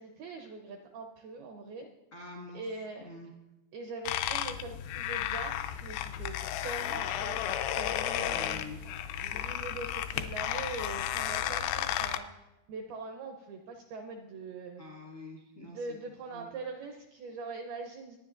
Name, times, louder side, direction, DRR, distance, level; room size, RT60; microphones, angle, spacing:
voice 1, 0.0-1.9 2.5-3.1 3.7-6.4 6.6-9.0 9.3-14.8 15.6-18.2, right 3 dB, 80° right, 3 dB, 2.2 m, -42 dB
voice 2, 2.1-2.6 3.0-3.3 8.2-8.8 9.2-9.4 14.8-16.0 16.3-16.5, left 2 dB, 60° left, -2 dB, 0.9 m, -46 dB
sound 1, 4.1-12.2, left 11 dB, 80° left, 2.7 m, -33 dB
25.0 x 9.8 x 2.5 m, 0.97 s
omnidirectional pair, 5.5 m